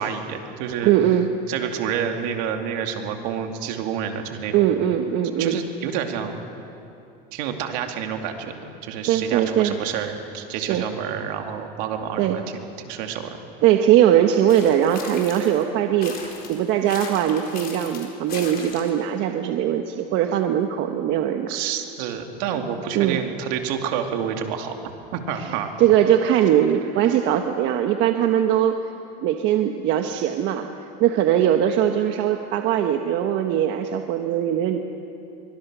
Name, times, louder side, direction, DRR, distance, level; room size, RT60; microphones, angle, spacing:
voice 1, 0.0-0.9 1.5-4.7 5.4-6.3 7.3-12.4 12.8-13.4 21.5-24.7 25.1-25.8, right 8 dB, 80° right, 4 dB, 2.5 m, -29 dB
voice 2, 0.8-1.3 4.5-5.6 9.1-9.7 10.5-10.8 12.2-12.4 13.6-21.6 22.9-23.2 25.4-28.8 29.2-30.7 31.0-34.8, right 10 dB, 65° right, 5 dB, 1.2 m, -20 dB
sound 1, 14.5-15.6 16.0-19.0, left 6 dB, 45° left, 4.4 m, -38 dB
25.0 x 23.5 x 6.2 m, 2.8 s
supercardioid pair, 110°, 21 cm